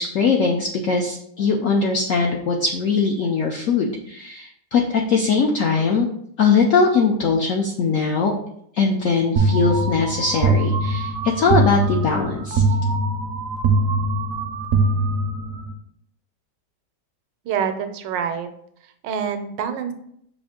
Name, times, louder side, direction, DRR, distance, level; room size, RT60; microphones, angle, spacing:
voice 1, 0.0-6.1 6.4-8.3 8.7-12.6, left 4 dB, 80° left, 1 dB, 0.7 m, -20 dB
sound 1, 9.4-15.7, right 2 dB, 70° right, 0.8 m, -22 dB
voice 2, 17.4-18.5 18.8-19.9, right 7 dB, 85° right, 8 dB, 1.3 m, -26 dB
6.0 x 2.5 x 3.5 m, 0.71 s
omnidirectional pair, 1.9 m